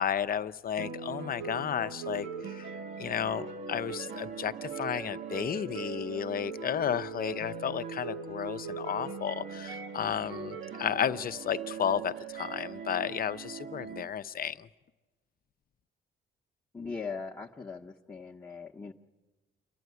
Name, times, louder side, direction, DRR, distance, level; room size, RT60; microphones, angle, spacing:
voice 1, 0.0-2.7 3.0-14.7, left 9 dB, 45° left, 13 dB, 0.7 m, -33 dB
sound 1, 0.8-14.0, right 6 dB, 70° right, 1.3 m, -40 dB
voice 2, 16.7-18.9, left 4 dB, 15° left, -1 dB, 0.9 m, -40 dB
28.5 x 11.5 x 9.4 m, 1.2 s
cardioid pair, 90°, 20 cm